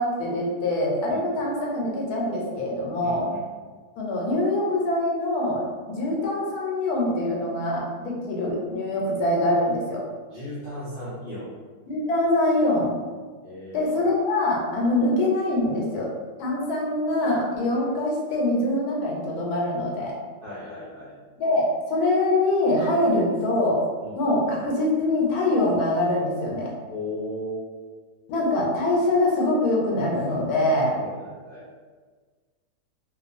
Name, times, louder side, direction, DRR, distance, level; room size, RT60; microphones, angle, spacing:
voice 1, 0.0-3.3 4.0-10.0 11.9-12.9 13.7-16.1 16.4-20.1 21.4-23.8 24.2-26.7 28.3-31.0, left 1 dB, 85° left, -2 dB, 1.1 m, -24 dB
voice 2, 3.0-3.4 10.3-11.5 13.4-13.9 20.4-21.1 24.0-24.2 26.9-27.7 31.0-31.6, left 1 dB, 60° left, -10 dB, 0.6 m, -36 dB
2.6 x 2.3 x 2.5 m, 1.5 s
omnidirectional pair, 1.6 m